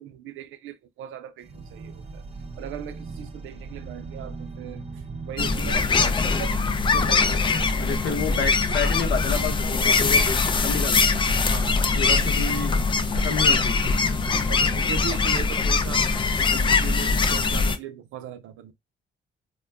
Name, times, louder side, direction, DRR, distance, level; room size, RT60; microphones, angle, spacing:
voice 1, 0.0-2.2 2.6-8.5 11.5-11.7 12.1-12.3 13.1-13.4 14.2-16.1 16.4-18.7, right 10 dB, 85° right, 0.5 m, -39 dB
sound 1, 1.4-15.1, right 4 dB, 30° right, 0.6 m, -39 dB
sound 2, 5.4-17.8, left 4 dB, 25° left, 0.3 m, -22 dB
voice 2, 7.8-11.1 11.9-12.7 13.1-13.8 14.1-14.2, left 5 dB, 65° left, 0.9 m, -30 dB
2.2 x 2.2 x 3.3 m
cardioid pair, 90°, 20 cm